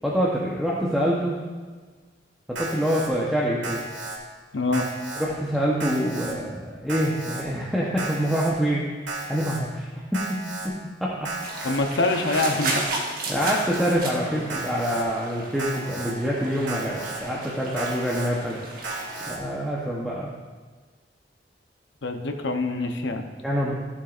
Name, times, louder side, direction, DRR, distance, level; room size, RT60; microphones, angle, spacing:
voice 1, 0.0-1.4 2.5-3.8 5.2-8.9 9.3-11.3 13.3-18.9 19.3-20.3 23.4-23.7, equal, ahead, -6 dB, 0.9 m, -26 dB
Alarm, 2.5-3.1 3.6-4.2 4.7-5.3 5.8-6.3 6.9-7.4 8.0-8.5 9.1-9.6 10.1-10.7 11.2-11.8 12.3-12.9 13.4-14.0 14.5-15.0 15.6-16.1 16.7-17.2 17.8-18.3 18.8-19.4, right 3 dB, 90° right, 1.7 m, -34 dB
voice 2, 4.5-4.9 11.6-13.0 22.0-23.2, left 2 dB, 80° left, 4 dB, 0.9 m, -25 dB
sound 1, 11.4-19.3, right 2 dB, 55° right, 1.4 m, -34 dB
15.0 x 7.1 x 2.5 m, 1.4 s
head